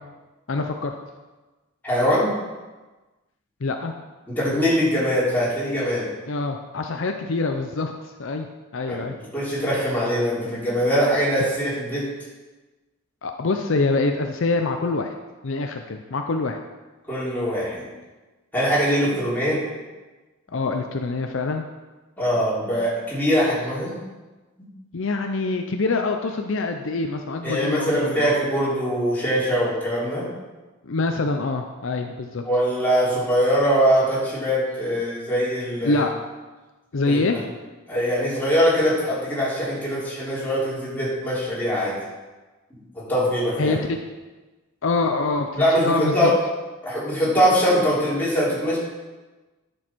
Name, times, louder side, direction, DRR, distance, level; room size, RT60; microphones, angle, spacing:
voice 1, 0.5-0.9 3.6-3.9 6.3-8.5 8.7-9.2 13.2-15.1 15.4-16.6 20.5-21.6 24.9-28.3 30.8-32.4 35.8-36.1 36.9-37.4 43.6-44.0 44.8-46.3, left 3 dB, 65° left, 5 dB, 0.6 m, -25 dB
voice 2, 1.8-2.3 4.3-6.1 8.9-9.1 9.3-12.0 17.1-17.8 18.5-19.6 22.2-23.9 25.0-25.1 27.4-30.3 32.4-36.0 37.0-37.2 37.9-41.9 43.1-43.8 45.5-46.3 46.8-48.8, equal, 10° left, -9 dB, 3.4 m, -22 dB
10.0 x 6.3 x 4.5 m, 1.2 s
head